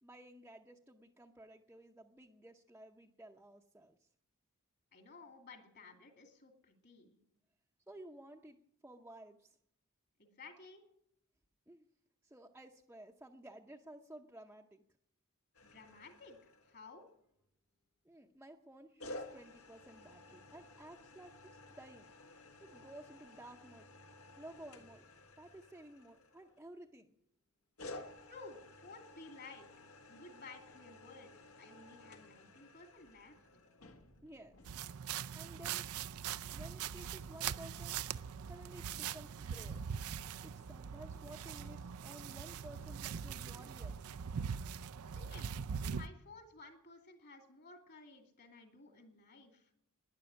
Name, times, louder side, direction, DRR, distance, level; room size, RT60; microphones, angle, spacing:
voice 1, 0.0-4.0 7.9-8.6 8.8-9.6 11.7-11.9 12.2-14.8 18.0-22.1 22.6-23.9 24.4-25.1 25.4-27.1 34.2-34.6 35.3-35.9 36.5-38.0 38.5-39.8 40.4-44.0, right 1 dB, 10° right, -1 dB, 0.7 m, -54 dB
voice 2, 4.9-7.2 10.2-10.8 15.6-16.4 16.6-17.1 28.2-29.7 30.1-33.4 45.1-49.7, left 3 dB, 50° left, 4 dB, 2.6 m, -55 dB
sound 1, 15.5-17.1 19.0-26.8 27.8-34.8, left 2 dB, 75° left, 1.6 m, -54 dB
sound 2, 34.6-46.1, right 7 dB, 75° right, 0.5 m, -42 dB
12.0 x 10.5 x 9.8 m, 0.76 s
head